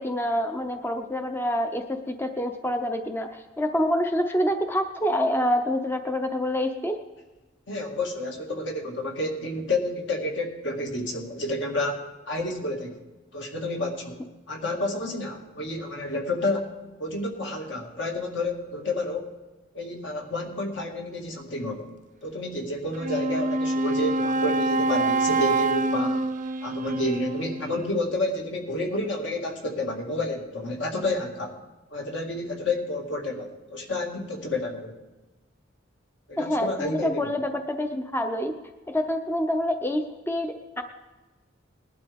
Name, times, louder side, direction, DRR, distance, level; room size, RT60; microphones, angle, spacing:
voice 1, 0.0-7.0 36.4-38.5 38.9-40.8, left 1 dB, 10° left, 6 dB, 0.6 m, -27 dB
voice 2, 7.7-12.9 13.3-14.2 14.5-16.7 17.0-19.3 19.7-21.9 22.2-26.2 26.6-31.5 31.9-34.9 36.3-37.2, left 1 dB, 65° left, 1 dB, 2.1 m, -30 dB
Wind instrument woodwind instrument, 22.9-27.9, right 2 dB, 40° right, 0.6 m, -26 dB
20.0 x 11.5 x 3.5 m, 1.2 s
head